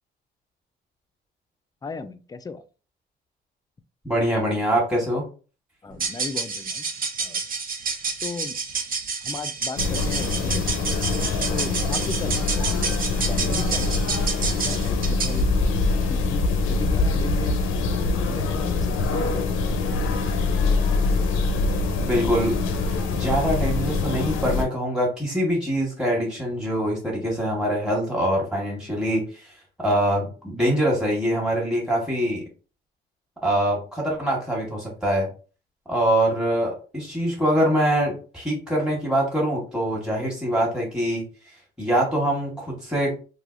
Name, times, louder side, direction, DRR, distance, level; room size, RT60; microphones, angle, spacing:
voice 1, 1.8-2.6 5.8-6.9 7.2-7.4 8.2-8.6 9.3-10.9 11.5-13.0 13.3-14.2 14.6-15.5 16.0-17.7 18.3-19.7, left 4 dB, 20° left, 10 dB, 0.4 m, -36 dB
voice 2, 4.0-5.2 22.0-22.6 23.1-29.5 29.8-32.4 33.4-35.3 35.9-43.1, right 1 dB, 5° right, -3 dB, 1.2 m, -24 dB
sound 1, 5.9-15.5, right 5 dB, 45° right, 0.7 m, -29 dB
sound 2, 9.8-24.6, left 3 dB, 85° left, 0.5 m, -24 dB
3.2 x 2.6 x 2.5 m, 0.36 s
cardioid pair, 90°, 20 cm